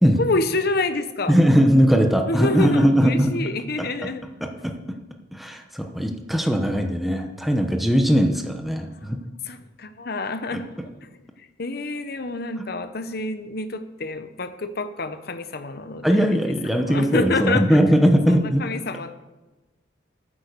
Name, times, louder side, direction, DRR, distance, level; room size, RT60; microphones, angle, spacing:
voice 1, 0.2-1.4 2.3-4.2 8.8-9.1 9.4-10.6 11.0-11.1 11.4-17.8 18.3-19.1, left 2 dB, 55° left, 10 dB, 0.9 m, -28 dB
voice 2, 1.3-3.3 3.8-3.9 4.4-4.7 5.3-9.2 10.5-10.6 16.0-18.6, equal, ahead, 3 dB, 0.9 m, -19 dB
9.0 x 8.9 x 6.7 m, 1.1 s
head